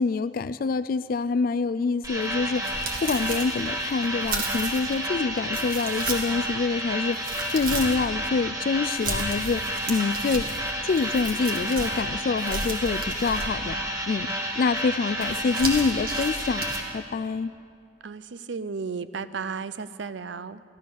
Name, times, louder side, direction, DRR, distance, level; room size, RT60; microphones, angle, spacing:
voice 1, 0.0-10.5 10.8-13.8 14.1-14.3 14.6-16.7 16.9-17.5, left 4 dB, 50° left, 12 dB, 0.3 m, -26 dB
sound 1, 2.0-16.8, equal, 20° right, 1.8 m, -31 dB
sound 2, 2.2-5.0 5.5-6.5 6.9-8.1 8.9-12.0 12.4-13.8 15.2-16.8, right 2 dB, 50° right, 1.9 m, -34 dB
voice 2, 18.0-20.6, right 5 dB, 75° right, 14 dB, 0.5 m, -34 dB
15.5 x 12.5 x 6.4 m, 2.3 s
head